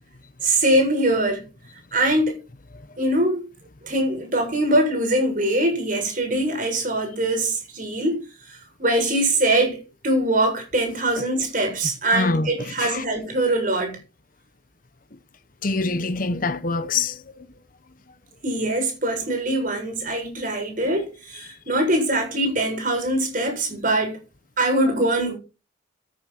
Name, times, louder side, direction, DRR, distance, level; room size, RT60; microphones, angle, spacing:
voice 1, 0.4-1.4 1.9-2.4 3.0-3.4 3.8-8.2 8.5-14.0 18.4-24.2 24.6-25.4, right 1 dB, 40° right, 7.2 m, -22 dB
voice 2, 12.1-12.5 12.8-13.0 15.6-17.2, left 3 dB, 45° left, 0.9 m, -24 dB
14.0 x 9.6 x 4.5 m
head